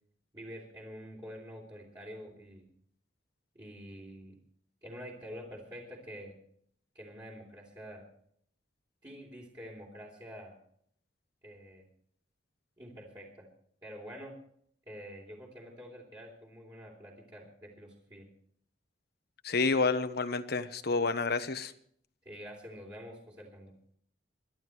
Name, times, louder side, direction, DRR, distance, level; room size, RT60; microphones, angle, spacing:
voice 1, 0.3-2.7 3.6-4.4 4.8-6.4 7.0-8.0 9.0-10.6 11.4-11.9 12.8-13.5 13.8-14.4 14.9-18.3 22.3-23.7, equal, 25° right, -4 dB, 3.5 m, -47 dB
voice 2, 19.4-21.7, left 4 dB, 60° left, 10 dB, 1.2 m, -29 dB
28.0 x 12.0 x 3.3 m, 0.63 s
head